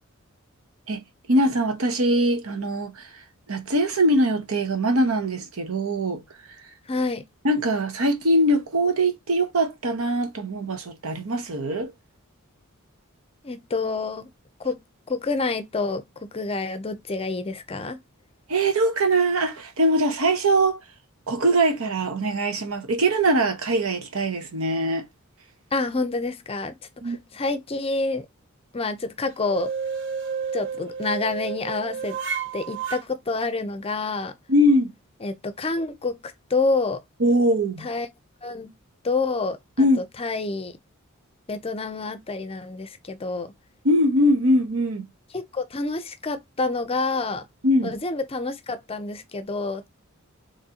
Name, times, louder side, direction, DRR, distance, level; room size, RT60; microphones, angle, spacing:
voice 1, 1.3-3.1 3.5-6.2 7.4-11.9 18.5-20.8 21.3-25.0 27.0-27.2 34.5-34.9 37.2-37.9 39.8-40.0 43.8-45.1 47.6-47.9, right 1 dB, 75° right, 0.9 m, -22 dB
voice 2, 6.9-7.2 13.4-14.3 14.6-14.8 15.1-18.0 25.7-26.8 27.0-28.3 28.7-29.7 30.5-32.2 32.5-34.3 35.2-37.0 37.8-38.1 38.4-38.7 39.0-40.7 41.5-43.5 45.3-47.5 47.8-49.9, left 3 dB, 25° left, 0.5 m, -28 dB
sound 1, 29.4-33.0, right 6 dB, 60° right, 0.5 m, -31 dB
3.9 x 3.1 x 2.8 m
head